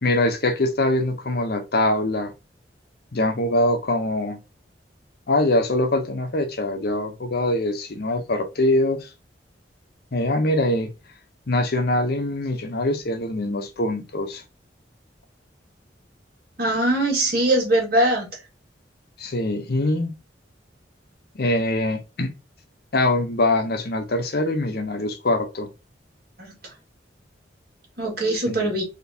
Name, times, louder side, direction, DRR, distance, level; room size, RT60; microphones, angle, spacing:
voice 1, 0.0-2.3 3.1-4.4 5.3-9.1 10.1-10.9 11.5-14.4 19.2-20.1 21.3-22.3 22.9-25.7 28.5-28.7, left 1 dB, 60° left, 0.8 m, -23 dB
voice 2, 16.6-18.3 26.4-26.5 28.0-28.8, right 1 dB, 55° right, 1.9 m, -21 dB
4.1 x 3.0 x 2.7 m
head